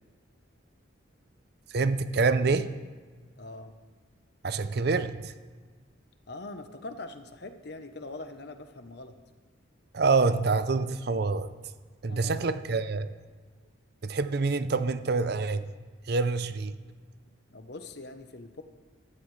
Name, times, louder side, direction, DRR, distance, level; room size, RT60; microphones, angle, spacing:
voice 1, 1.7-2.7 4.4-5.3 9.9-11.5 12.0-13.1 14.0-15.7 16.1-16.7, right 4 dB, 55° right, 12 dB, 0.5 m, -26 dB
voice 2, 3.4-3.7 6.3-9.1 12.1-12.5 17.5-18.6, left 2 dB, 55° left, 8 dB, 0.9 m, -42 dB
15.0 x 12.5 x 3.2 m, 1.4 s
head